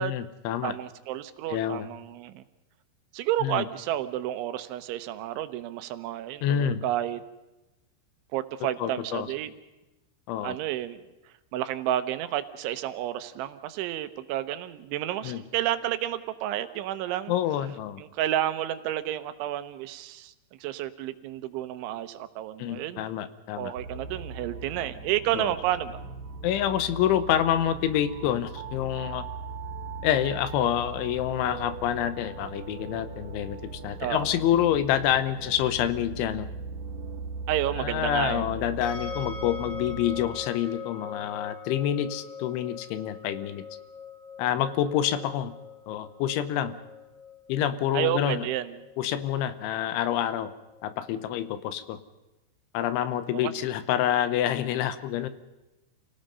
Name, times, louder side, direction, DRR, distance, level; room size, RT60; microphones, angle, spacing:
voice 1, 0.0-0.7 1.5-1.9 3.4-3.7 6.4-6.8 8.8-9.3 10.3-10.6 15.2-15.4 17.3-18.0 22.6-23.7 25.3-25.5 26.4-29.3 30.0-36.5 37.8-43.6 44.4-45.5 45.9-46.8 47.5-48.5 49.0-50.5 50.8-52.0 52.7-55.3, left 11 dB, 80° left, 13 dB, 3.4 m, -27 dB
voice 2, 0.6-2.4 3.1-7.2 8.3-9.5 10.4-11.0 11.5-17.3 18.0-20.3 20.6-23.0 23.6-26.0 34.0-34.3 37.5-38.5 47.9-48.8 53.3-53.5, right 12 dB, 80° right, 11 dB, 3.3 m, -31 dB
sound 1, 23.7-40.3, right 4 dB, 55° right, 2.9 m, -39 dB
sound 2, 38.8-51.8, left 5 dB, 60° left, 4.7 m, -43 dB
28.0 x 18.0 x 5.4 m, 1.0 s
omnidirectional pair, 5.5 m